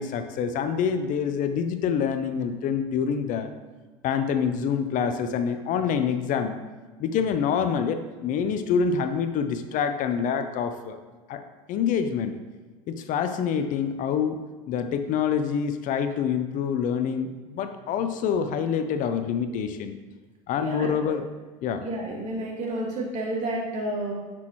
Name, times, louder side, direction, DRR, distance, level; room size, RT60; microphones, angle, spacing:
voice 1, 0.0-3.5 4.0-6.6 7.0-11.0 11.3-11.4 11.7-12.4 12.9-14.4 14.7-20.0 20.5-21.3 21.6-21.9, left 7 dB, 50° left, 9 dB, 0.6 m, -26 dB
voice 2, 20.6-21.1 21.8-24.1, right 1 dB, 45° right, -2 dB, 2.5 m, -30 dB
9.5 x 6.1 x 3.1 m, 1.4 s
supercardioid pair, 90°, 17 cm